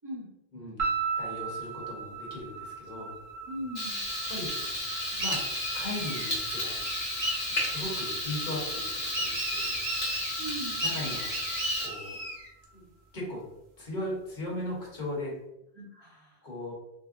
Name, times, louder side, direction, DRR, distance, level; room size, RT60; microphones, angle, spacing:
voice 1, 0.5-0.8 1.2-3.1 4.3-4.5 5.1-5.4 5.7-6.8 7.6-9.8 10.8-11.4 11.8-12.2 12.7-13.4 13.8-15.3 16.4-16.7, left 1 dB, 50° left, -3 dB, 0.9 m, -38 dB
sound 1, 0.8-13.1, right 5 dB, 55° right, 0.9 m, -39 dB
voice 2, 3.5-4.0 10.4-10.8 15.7-16.5, right 1 dB, 30° right, -6 dB, 0.6 m, -39 dB
Frying (food), 3.7-11.9, left 1 dB, 70° left, 1.2 m, -33 dB
sound 2, 5.2-6.3 6.8-7.8 9.1-10.3 10.8-12.5, right 1 dB, 80° right, 1.0 m, -35 dB
3.6 x 2.0 x 2.4 m, 0.87 s
omnidirectional pair, 1.1 m